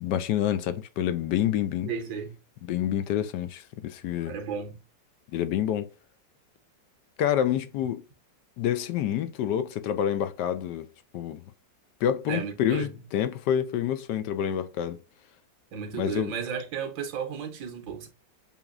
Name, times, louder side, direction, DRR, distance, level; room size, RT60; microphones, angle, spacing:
voice 1, 0.0-1.9 2.7-4.3 5.3-5.9 7.2-8.0 8.6-10.9 11.1-11.4 12.0-15.0 16.0-16.3, left 10 dB, 75° left, 1.1 m, -27 dB
voice 2, 1.9-2.4 4.2-4.8 12.3-12.9 15.7-18.1, right 7 dB, 85° right, 1.8 m, -34 dB
7.0 x 3.0 x 2.4 m
omnidirectional pair, 2.0 m